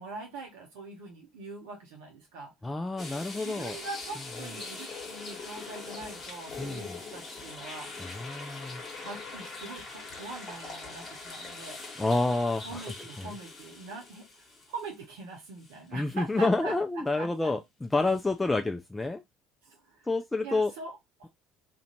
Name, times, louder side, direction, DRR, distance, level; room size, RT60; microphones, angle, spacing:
voice 1, 0.0-2.5 3.4-7.9 9.0-12.0 12.6-16.8 17.2-17.5 19.6-20.1 20.4-21.3, right 3 dB, 70° right, 0.6 m, -43 dB
voice 2, 2.6-3.8 6.6-7.0 8.0-8.8 12.0-12.8 13.2-13.3 15.9-19.2 20.1-20.7, left 2 dB, 15° left, 0.3 m, -29 dB
sound 1, 3.0-15.2 15.6-15.7 18.1-18.2, left 3 dB, 35° left, 1.1 m, -42 dB
2.5 x 2.1 x 2.8 m
hypercardioid pair, 60°, 0 cm